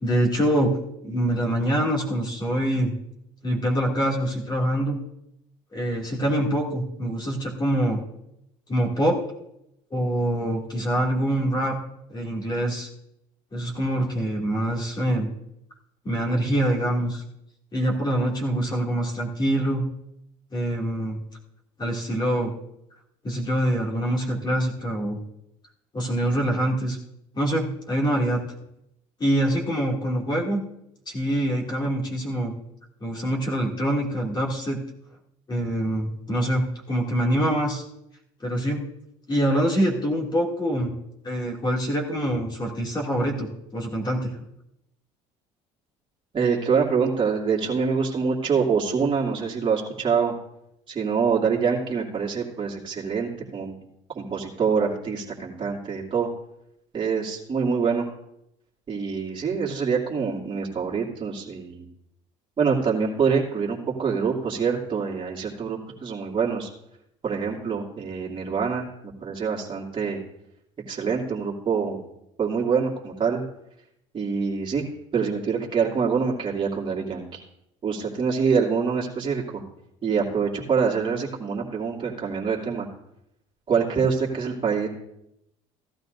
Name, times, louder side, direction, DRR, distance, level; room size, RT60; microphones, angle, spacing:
voice 1, 0.0-0.7 1.0-2.9 3.4-5.0 5.7-8.0 8.7-9.2 9.9-11.7 12.1-12.9 13.5-15.3 16.0-17.2 17.7-19.8 20.5-21.2 21.8-22.5 23.2-25.2 25.9-27.0 27.3-28.4 29.2-30.6 31.1-32.5 33.0-34.8 35.5-37.8 38.4-38.8 39.3-40.9 41.2-44.4, right 1 dB, 30° left, -2 dB, 2.6 m, -25 dB
voice 2, 46.3-50.3 50.9-53.8 54.1-56.3 56.9-58.1 58.9-61.9 62.6-66.7 67.2-70.2 70.9-72.0 72.4-73.4 74.1-74.8 75.1-77.4 77.8-79.6 80.0-82.9 83.7-84.9, right 5 dB, 35° right, -4 dB, 2.6 m, -25 dB
16.0 x 12.5 x 2.6 m, 0.82 s
supercardioid pair, 80°, 15 cm